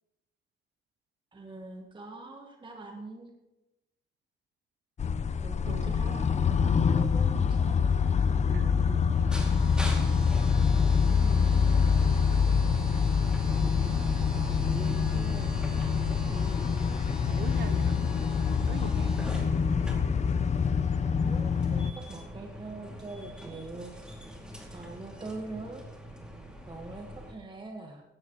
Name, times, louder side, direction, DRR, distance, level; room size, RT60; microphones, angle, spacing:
voice 1, 1.3-3.3 5.4-7.9 9.6-9.7 10.0-11.7 13.5-16.6 21.1-24.2 24.7-25.8 26.7-28.0, right 2 dB, 25° right, 2 dB, 1.3 m, -43 dB
sound 1, 5.0-21.9, left 6 dB, 35° left, 0.6 m, -26 dB
voice 2, 5.6-6.1 8.5-9.2 17.3-18.0 18.7-19.4, right 11 dB, 60° right, 17 dB, 0.5 m, -42 dB
sound 2, 9.1-27.3, equal, 5° right, 2.3 m, -42 dB
16.0 x 11.0 x 3.0 m, 0.95 s
cardioid pair, 90°, 20 cm